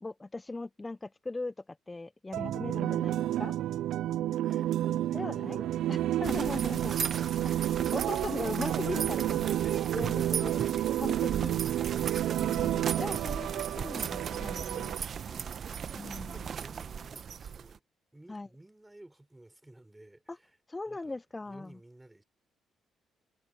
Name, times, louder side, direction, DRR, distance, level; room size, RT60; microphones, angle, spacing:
voice 1, 0.0-3.6 5.1-5.6 5.9-7.0 7.4-9.6 9.9-10.6 10.9-11.6 12.4-13.5 13.8-14.9 15.9-16.5 18.3-18.5 20.3-20.4 20.7-21.8, left 2 dB, 20° left, 0.4 m, -39 dB
sound 1, 2.3-15.0, right 13 dB, 80° right, 0.3 m, -31 dB
voice 2, 4.4-6.5 9.6-10.0 11.1-11.4 15.2-17.8 18.1-20.6 20.9-21.2 21.4-22.2, right 1 dB, 10° right, 4.6 m, -56 dB
sound 2, 6.2-17.8, right 7 dB, 55° right, 0.9 m, -37 dB
cardioid pair, 90°, 0 cm